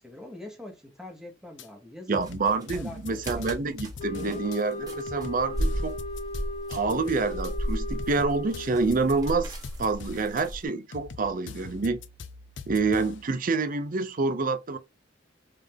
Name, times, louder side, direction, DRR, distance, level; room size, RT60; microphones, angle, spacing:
voice 1, 0.0-2.2 2.7-3.5 4.1-4.5, left 1 dB, 5° right, 1.1 m, -43 dB
sound 1, 1.6-1.7 2.1-4.6 5.1-7.5 8.0-10.4 10.9-13.3, left 4 dB, 80° left, 0.5 m, -43 dB
voice 2, 2.1-6.0 6.7-12.0 12.7-14.8, right 3 dB, 50° right, 0.5 m, -27 dB
sound 2, 2.2-10.6, equal, 20° right, 1.4 m, -34 dB
sound 3, 4.0-8.9, left 1 dB, 35° left, 0.6 m, -37 dB
3.6 x 3.3 x 3.5 m
head